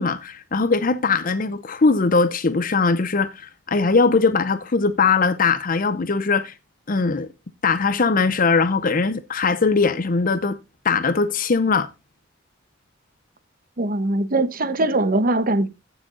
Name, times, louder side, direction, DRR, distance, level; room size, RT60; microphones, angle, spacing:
voice 1, 0.0-6.5 6.9-7.3 7.6-10.6 10.8-11.9, left 4 dB, 45° left, 0.7 m, -20 dB
voice 2, 13.8-15.7, right 2 dB, 45° right, 1.1 m, -21 dB
15.0 x 6.2 x 3.9 m
head